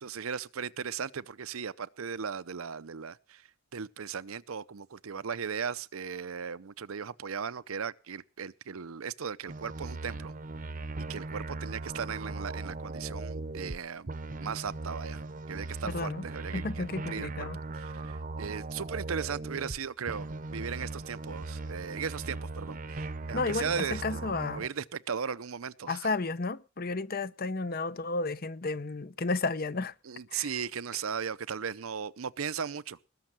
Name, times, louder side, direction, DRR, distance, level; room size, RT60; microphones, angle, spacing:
voice 1, 0.0-3.4 3.7-10.3 11.1-14.1 14.4-15.2 15.5-26.1 30.0-33.0, right 6 dB, 80° right, 0.7 m, -37 dB
sound 1, 9.5-13.8 14.1-19.8 20.1-24.7, right 2 dB, 40° right, 0.8 m, -39 dB
voice 2, 15.8-16.2 16.5-17.6 23.3-24.6 25.9-29.9 30.3-30.5, left 3 dB, 45° left, 0.7 m, -32 dB
19.5 x 6.6 x 7.4 m
head